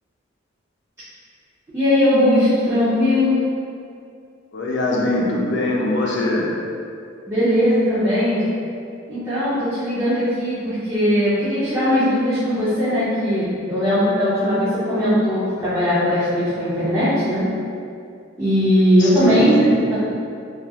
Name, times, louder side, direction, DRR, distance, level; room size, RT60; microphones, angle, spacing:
voice 1, 1.7-3.4 7.3-8.4 9.1-17.5 18.4-19.6 19.9-20.0, equal, 15° right, -13 dB, 0.5 m, -19 dB
voice 2, 4.5-6.5 19.0-19.8, left 1 dB, 65° left, -3 dB, 0.5 m, -22 dB
2.9 x 2.4 x 2.3 m, 2.4 s
head